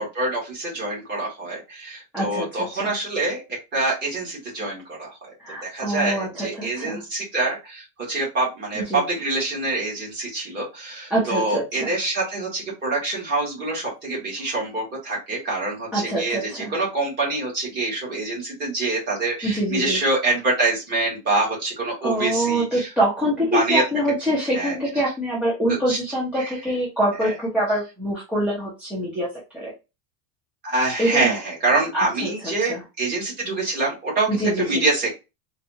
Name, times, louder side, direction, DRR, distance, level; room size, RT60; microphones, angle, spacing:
voice 1, 0.0-5.3 5.6-22.9 23.5-23.8 24.5-24.7 25.9-26.0 26.4-26.5 27.2-27.3 30.6-35.1, right 2 dB, 25° right, -4 dB, 1.7 m, -25 dB
voice 2, 2.1-2.9 5.4-7.0 8.8-9.0 11.1-11.9 15.9-16.7 19.4-20.0 22.0-29.3 29.5-29.7 31.0-31.4 31.9-32.8 34.3-34.8, right 1 dB, 5° right, -7 dB, 0.6 m, -25 dB
4.0 x 2.4 x 2.7 m, 0.26 s
cardioid pair, 180°, 38 cm